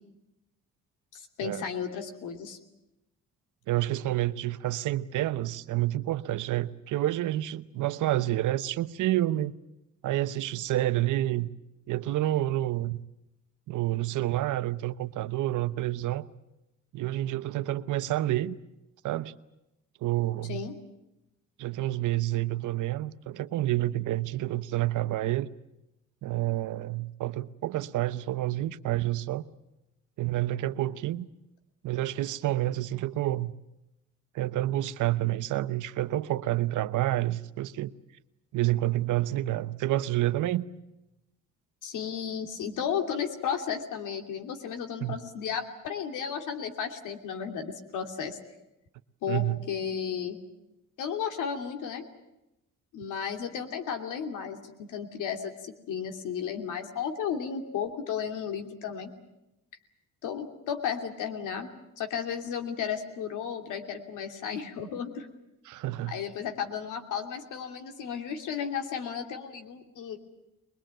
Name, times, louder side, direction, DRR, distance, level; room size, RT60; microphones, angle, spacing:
voice 1, 1.1-2.6 20.5-20.7 41.8-48.4 49.2-50.4 51.0-52.0 52.9-59.1 60.2-61.7 62.0-65.3 66.1-70.2, left 7 dB, 85° left, 2.9 m, -34 dB
voice 2, 3.7-9.5 10.0-11.5 11.9-13.0 13.7-16.2 16.9-18.6 19.0-19.3 20.0-20.6 21.6-25.5 26.2-29.4 30.2-31.3 31.8-33.5 34.3-37.9 38.5-40.7 45.0-45.2 49.3-49.6 65.7-66.1, right 15 dB, 80° right, 1.0 m, -29 dB
22.0 x 22.0 x 9.0 m
cardioid pair, 90°, 30 cm